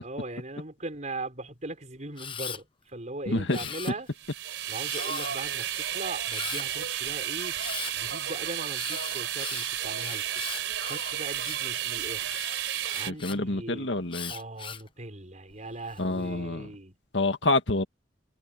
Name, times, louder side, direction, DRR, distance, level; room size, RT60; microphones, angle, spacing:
voice 1, 0.0-4.1 4.7-7.6 7.9-10.3 10.9-12.4 12.9-14.0 14.3-17.0, right 2 dB, 40° right, 5.6 m, -39 dB
Camera, 2.2-2.6 3.5-4.3 4.9-5.5 6.3-6.7 7.5-7.9 8.7-11.7 12.2-13.4 14.1-14.9 15.5-16.0, left 7 dB, 30° left, 0.9 m, -39 dB
voice 2, 3.3-3.7 13.1-14.3 16.0-16.7 17.1-17.8, left 2 dB, 75° left, 2.0 m, -27 dB
sound 1, 4.2-13.1, right 10 dB, 90° right, 4.2 m, -32 dB
head